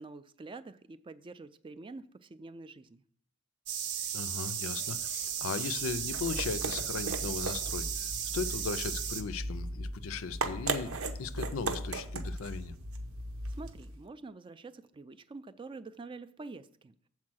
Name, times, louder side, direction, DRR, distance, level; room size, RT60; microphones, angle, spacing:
voice 1, 0.0-3.0 13.5-17.1, right 3 dB, 25° right, 0.3 m, -47 dB
sound 1, 3.7-9.2, right 8 dB, 55° right, 0.8 m, -35 dB
voice 2, 4.1-12.7, left 5 dB, 70° left, 0.5 m, -37 dB
sound 2, 5.8-14.0, right 2 dB, 85° right, 0.9 m, -37 dB
7.4 x 4.6 x 6.1 m
head